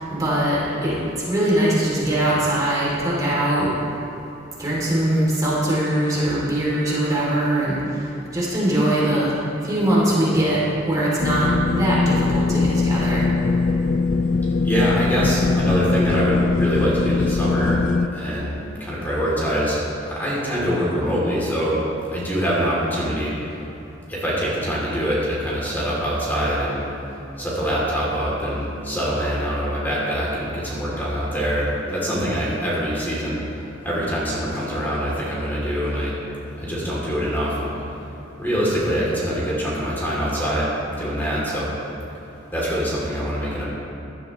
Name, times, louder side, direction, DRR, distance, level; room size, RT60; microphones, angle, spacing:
voice 1, 0.1-1.0 1.3-3.7 4.6-7.8 8.3-9.3 9.6-13.2, right 1 dB, 20° right, -7 dB, 2.5 m, -21 dB
sound 1, 11.2-18.1, left 4 dB, 40° left, 0.3 m, -21 dB
voice 2, 14.6-17.8 18.1-19.8 20.1-21.8 22.1-23.3 24.1-26.8 27.4-33.4 33.8-36.1 36.6-37.7 38.4-41.7 42.5-43.6, equal, 10° left, -7 dB, 2.6 m, -24 dB
16.5 x 12.0 x 3.0 m, 2.8 s
head